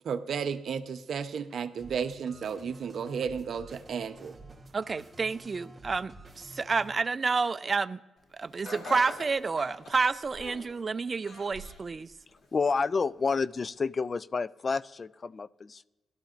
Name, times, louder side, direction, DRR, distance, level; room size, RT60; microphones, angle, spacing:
voice 1, 0.0-4.3, right 6 dB, 70° right, 0.7 m, -33 dB
sound 1, 1.8-6.9, right 2 dB, 15° right, 2.3 m, -50 dB
voice 2, 4.7-8.0 8.3-12.1, right 4 dB, 40° right, 0.4 m, -29 dB
Laughter, 8.6-10.8 11.2-11.9 12.4-12.5 13.4-13.5, left 1 dB, 65° left, 2.7 m, -43 dB
voice 3, 12.5-15.8, left 4 dB, 45° left, 0.3 m, -29 dB
17.0 x 12.5 x 2.5 m
cardioid pair, 65°, 0 cm